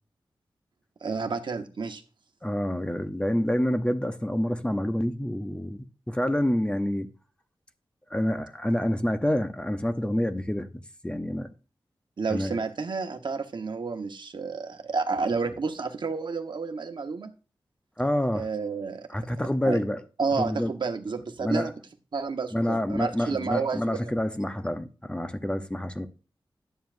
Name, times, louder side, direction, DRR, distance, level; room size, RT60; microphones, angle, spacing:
voice 1, 1.0-2.0 12.2-17.3 18.3-19.1 19.6-19.8 20.2-21.7 22.1-24.1, right 4 dB, 65° right, 1.1 m, -30 dB
voice 2, 2.4-7.1 8.1-10.7 11.0-11.5 12.3-12.5 18.0-18.5 19.1-20.0 20.4-20.7 21.4-21.7 22.5-26.1, left 1 dB, 10° left, 0.7 m, -27 dB
11.0 x 7.1 x 2.6 m
wide cardioid pair, 75°, 9 cm